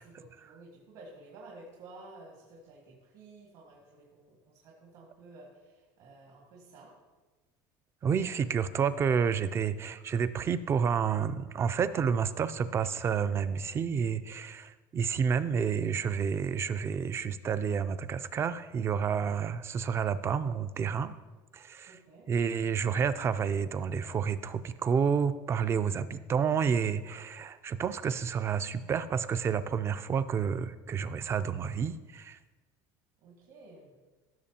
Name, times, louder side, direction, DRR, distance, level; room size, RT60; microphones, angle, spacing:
voice 1, 0.0-6.9 21.9-22.3 33.2-33.9, right 2 dB, 65° right, -3 dB, 2.2 m, -52 dB
voice 2, 8.0-21.2 21.5-22.0 22.3-32.4, right 6 dB, 25° right, 13 dB, 0.4 m, -30 dB
15.5 x 6.6 x 2.8 m, 1.3 s
cardioid pair, 135°, 10 cm